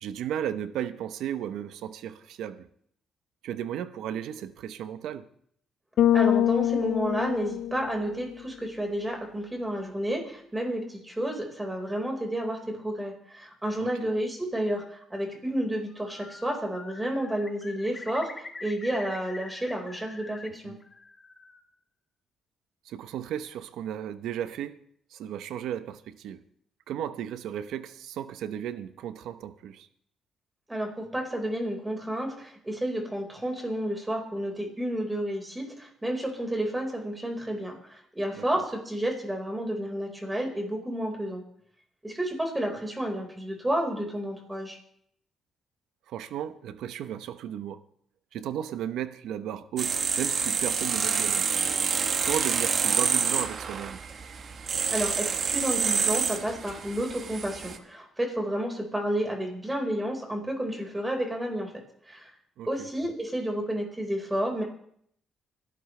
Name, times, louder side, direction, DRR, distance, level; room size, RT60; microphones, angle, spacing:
voice 1, 0.0-2.7 3.4-5.3 13.8-14.1 20.6-20.8 22.9-24.8 25.1-26.4 26.9-29.9 38.3-38.6 46.1-47.8 48.3-51.5 52.2-54.0 62.6-62.9, right 10 dB, 85° right, 0.9 m, -35 dB
Bass guitar, 6.0-8.3, left 11 dB, 70° left, 0.5 m, -24 dB
voice 2, 6.1-20.7 30.7-41.4 42.0-44.8 54.6-61.7 62.1-62.3 62.7-64.6, right 1 dB, 15° right, 4.7 m, -31 dB
Bird, 15.9-16.5 16.8-20.5 20.8-21.6, left 3 dB, 30° left, 1.8 m, -44 dB
sound 1, 49.8-57.8, right 6 dB, 50° right, 1.3 m, -28 dB
25.5 x 12.0 x 3.3 m
cardioid pair, 90°, 0 cm